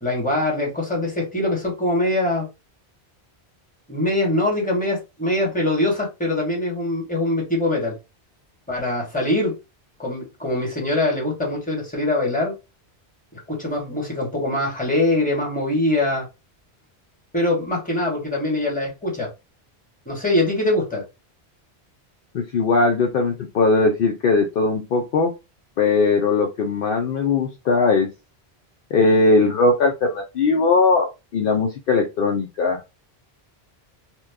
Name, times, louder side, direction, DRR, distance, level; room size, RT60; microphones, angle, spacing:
voice 1, 0.0-2.5 3.9-7.9 8.7-9.5 10.0-12.5 13.5-16.3 17.3-19.3 20.0-21.0, left 1 dB, 10° left, -3 dB, 1.3 m, -23 dB
voice 2, 22.3-25.3 25.8-28.1 28.9-32.8, left 3 dB, 65° left, 2 dB, 0.7 m, -19 dB
3.0 x 2.2 x 3.4 m, 0.26 s
omnidirectional pair, 1.1 m